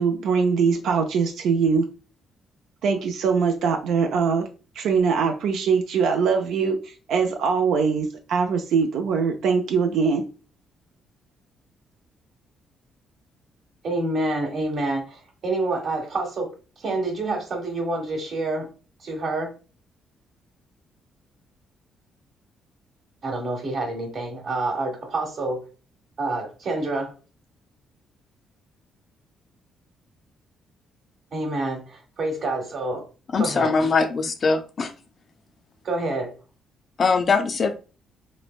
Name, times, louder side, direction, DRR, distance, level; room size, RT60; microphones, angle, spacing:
voice 1, 0.0-1.8 2.8-4.5 4.8-10.2, right 5 dB, 80° right, 4 dB, 0.3 m, -22 dB
voice 2, 13.8-16.5 16.8-18.7 19.0-19.5 23.2-25.6 26.2-27.1 31.3-33.0 33.4-33.7 35.8-36.3, right 2 dB, 60° right, 2 dB, 1.0 m, -27 dB
voice 3, 33.3-34.9 37.0-37.7, left 4 dB, 45° left, 8 dB, 0.4 m, -21 dB
3.0 x 2.1 x 2.3 m, 0.35 s
cardioid pair, 90°, 0 cm